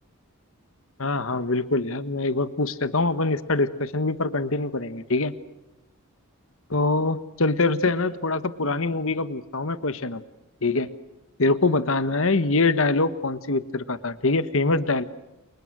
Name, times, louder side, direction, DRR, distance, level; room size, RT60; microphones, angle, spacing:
voice 1, 1.0-5.4 6.7-10.2 10.6-10.9 11.4-15.0, left 3 dB, 65° left, 13 dB, 1.4 m, -24 dB
30.0 x 29.0 x 6.3 m, 0.91 s
head